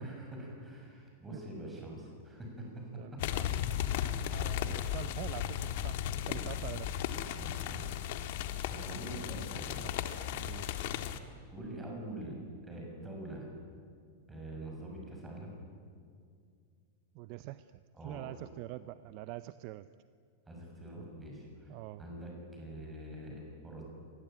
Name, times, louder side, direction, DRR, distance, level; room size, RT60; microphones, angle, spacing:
voice 1, 0.0-3.2 3.9-4.3 7.0-7.8 8.7-9.9 11.5-12.4 12.6-13.5 14.3-15.6 17.9-18.4 20.5-23.8, right 1 dB, 10° right, -1 dB, 6.4 m, -45 dB
voice 2, 3.0-3.5 4.3-6.0 6.3-7.0 9.8-9.9 10.3-10.8 17.1-19.9 21.7-22.0, right 16 dB, 40° right, 14 dB, 0.6 m, -45 dB
sound 1, 3.2-11.2, left 10 dB, 50° left, 1.6 m, -35 dB
26.0 x 20.5 x 9.0 m, 2.2 s
supercardioid pair, 170°, 0 cm